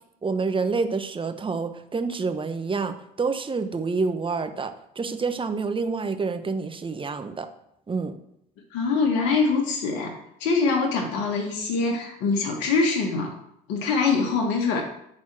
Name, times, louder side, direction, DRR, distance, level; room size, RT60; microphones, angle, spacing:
voice 1, 0.2-7.5 7.9-8.1, right 4 dB, 25° right, 7 dB, 1.2 m, -28 dB
voice 2, 8.7-10.1 10.4-13.3 13.7-14.8, left 4 dB, 70° left, 2 dB, 1.7 m, -23 dB
11.0 x 4.4 x 6.2 m, 0.74 s
hypercardioid pair, 70°, 21 cm